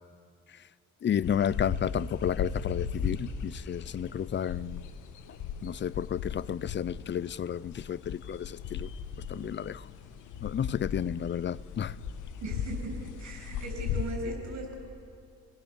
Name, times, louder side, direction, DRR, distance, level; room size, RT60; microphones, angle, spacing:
voice 1, 1.0-4.9 5.6-8.9 9.3-9.9 10.4-11.9, left 9 dB, 40° left, 0.5 m, -32 dB
sound 1, 1.2-14.1, left 7 dB, 85° left, 1.5 m, -37 dB
voice 2, 12.4-14.7, right 1 dB, 70° right, 7.5 m, -38 dB
28.5 x 19.5 x 7.3 m
cardioid pair, 90°, 30 cm